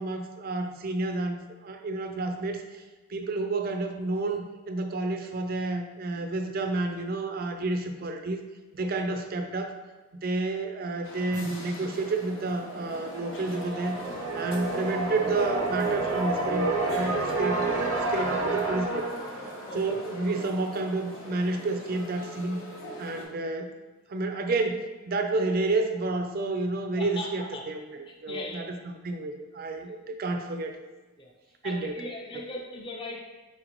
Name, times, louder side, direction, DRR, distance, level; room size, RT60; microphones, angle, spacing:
voice 1, 0.0-2.8 3.1-8.4 8.7-9.7 10.1-14.0 14.3-19.1 19.7-22.6 23.0-23.8 24.1-30.8 31.6-32.0, right 2 dB, 45° right, 6 dB, 0.4 m, -30 dB
sound 1, 11.0-23.3, left 1 dB, 75° left, 0.8 m, -43 dB
sound 2, 12.8-20.6, right 3 dB, 90° right, 0.6 m, -30 dB
voice 2, 19.7-20.0 27.0-27.7 28.1-28.7 31.2-31.3 31.6-33.2, left 1 dB, 25° left, 0 dB, 0.5 m, -39 dB
4.0 x 3.8 x 3.0 m, 1.2 s
head